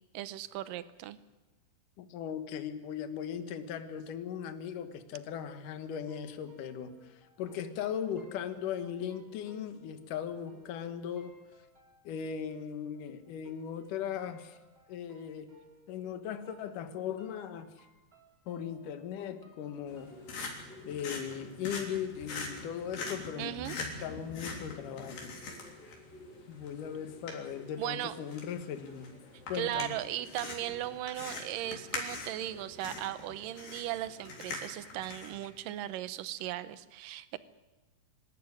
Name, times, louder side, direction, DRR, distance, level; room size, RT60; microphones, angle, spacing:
voice 1, 0.1-1.2 23.4-23.7 27.8-28.1 29.5-37.4, right 13 dB, 80° right, 14 dB, 2.5 m, -37 dB
voice 2, 2.0-11.3 12.0-14.6 14.9-15.5 15.9-17.9 18.5-20.1 20.9-25.4 26.5-29.1 29.5-30.0, left 8 dB, 70° left, 9 dB, 2.8 m, -38 dB
sound 1, 6.1-16.2 16.4-20.3, left 3 dB, 15° right, 3.9 m, -60 dB
sound 2, 19.9-35.5, left 3 dB, 90° left, 5.2 m, -43 dB
25.5 x 13.0 x 9.8 m, 1.1 s
omnidirectional pair, 3.9 m